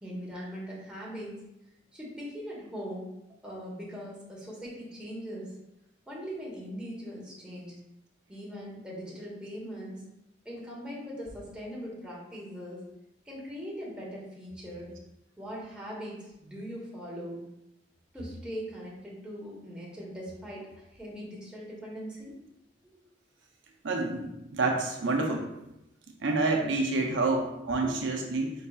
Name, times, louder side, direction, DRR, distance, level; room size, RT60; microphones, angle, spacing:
voice 1, 0.0-1.4 1.9-3.1 3.4-5.5 6.1-7.8 8.3-10.0 10.4-12.8 13.2-14.9 15.4-17.4 18.1-22.4 22.8-23.0 25.0-25.1 27.8-28.2, equal, 5° right, -6 dB, 1.2 m, -40 dB
voice 2, 23.8-25.4 26.2-28.5, right 3 dB, 70° right, 1 dB, 0.6 m, -28 dB
4.6 x 4.0 x 2.4 m, 0.88 s
head